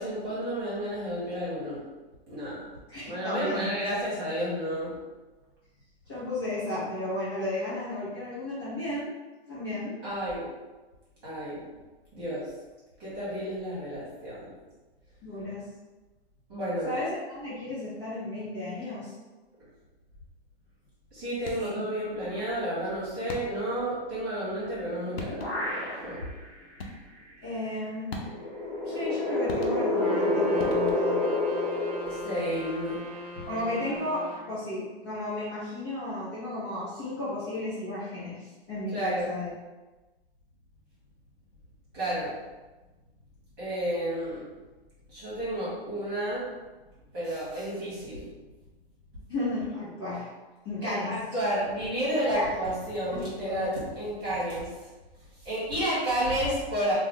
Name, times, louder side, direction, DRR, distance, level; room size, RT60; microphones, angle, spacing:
voice 1, 0.0-1.8 2.3-2.7 3.0-4.9 10.0-10.5 11.2-11.6 12.1-12.5 13.0-14.5 16.5-17.0 21.1-25.4 26.0-26.2 32.0-33.0 33.4-33.5 38.9-39.3 41.9-42.3 43.6-44.4 45.1-46.5 47.1-48.3 50.8-54.7 55.4-56.9, right 1 dB, 20° right, -10 dB, 1.3 m, -31 dB
voice 2, 2.9-3.7 6.1-9.1 9.5-9.9 15.2-15.6 16.8-19.1 21.6-21.8 27.4-28.1 28.8-31.3 33.5-39.5 49.3-50.3 50.6-51.2 52.3-52.6 53.1-53.2 53.5-53.6, left 1 dB, 25° left, -11 dB, 0.8 m, -34 dB
sound 1, 21.4-21.9 23.3-23.8 24.8-24.9 25.2-25.8 26.8-27.3 28.1-28.7 29.5-30.1 30.6-31.3, left 2 dB, 70° left, 0.7 m, -40 dB
sound 2, 24.8-26.4 26.8-26.9 28.2-33.0, left 2 dB, 5° left, 1.2 m, -29 dB
Trumpet, 29.9-34.5, equal, 40° right, 0.5 m, -40 dB
3.2 x 2.2 x 3.7 m, 1.2 s
hypercardioid pair, 175°, 31 cm